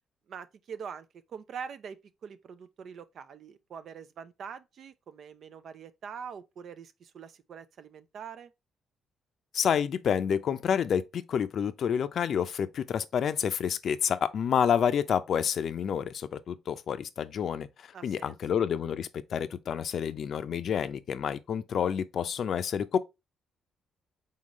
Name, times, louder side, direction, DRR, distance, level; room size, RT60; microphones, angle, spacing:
voice 1, 0.3-8.5 17.9-18.4, right 7 dB, 60° right, 0.5 m, -44 dB
voice 2, 9.5-23.0, left 8 dB, 60° left, 0.5 m, -29 dB
4.0 x 3.8 x 3.0 m
cardioid pair, 90°, 0 cm